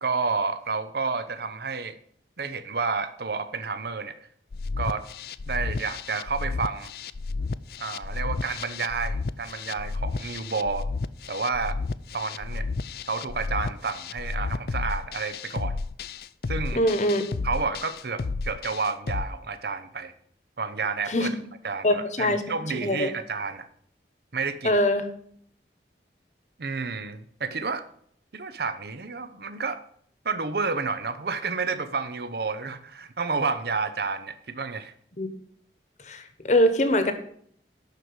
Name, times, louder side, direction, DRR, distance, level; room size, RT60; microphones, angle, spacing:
voice 1, 0.0-2.0 2.4-4.1 4.8-5.0 5.5-6.9 7.8-10.9 11.3-11.8 12.1-12.7 13.1-15.8 16.5-16.8 17.4-20.1 20.6-21.3 21.6-23.7 24.3-24.8 26.6-27.8 28.3-29.8 30.2-34.9, right 4 dB, 60° right, 11 dB, 0.7 m, -30 dB
sound 1, 4.5-19.3, left 4 dB, 55° left, 0.4 m, -32 dB
voice 2, 16.7-17.2 21.1-21.4 21.8-22.4 22.8-23.1 24.6-25.1 35.2-35.3 36.1-37.1, left 1 dB, 40° left, 9 dB, 1.2 m, -23 dB
11.5 x 4.6 x 8.0 m, 0.63 s
head